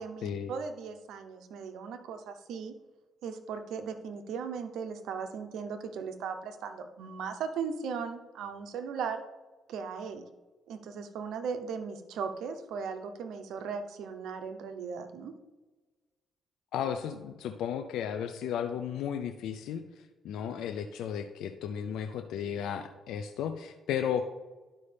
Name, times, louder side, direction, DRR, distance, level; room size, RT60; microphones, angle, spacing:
voice 1, 0.0-2.7 3.2-9.2 9.7-10.2 10.7-15.3, right 6 dB, 80° right, 8 dB, 0.8 m, -37 dB
voice 2, 16.7-19.8 20.2-24.2, left 8 dB, 80° left, 7 dB, 0.4 m, -34 dB
11.5 x 5.3 x 3.4 m, 1.2 s
cardioid pair, 90°, 0 cm